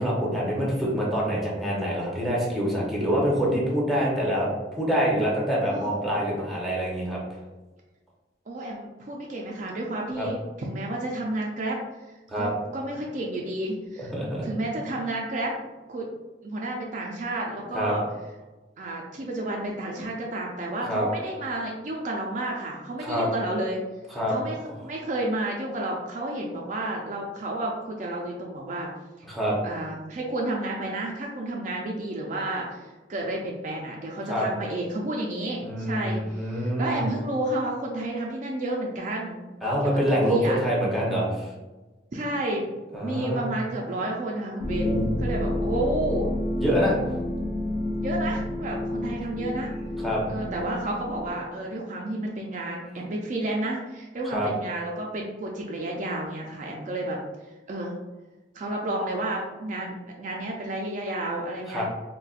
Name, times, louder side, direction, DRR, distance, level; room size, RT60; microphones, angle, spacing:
voice 1, 0.0-4.5 4.7-7.2 10.2-10.3 12.3-12.5 14.0-14.4 17.7-18.0 20.9-21.1 23.0-23.3 24.1-24.3 29.3-29.6 34.3-34.4 35.6-37.0 39.6-41.5 42.9-43.5 44.8-45.1 46.6-47.0 50.0-50.2 54.3-54.5 61.7-61.8, equal, ahead, -5 dB, 0.7 m, -25 dB
voice 2, 8.5-11.8 12.1-14.1 14.4-15.6 15.9-16.1 16.4-18.0 18.8-23.8 24.3-28.9 29.6-39.4 39.8-40.6 42.1-42.7 43.0-46.3 48.0-49.7 50.3-57.2 57.7-58.0 58.5-61.8, right 1 dB, 45° right, -1 dB, 0.4 m, -31 dB
sound 1, 44.6-51.3, left 1 dB, 50° left, 0.6 m, -29 dB
4.0 x 2.1 x 2.4 m, 1.2 s
head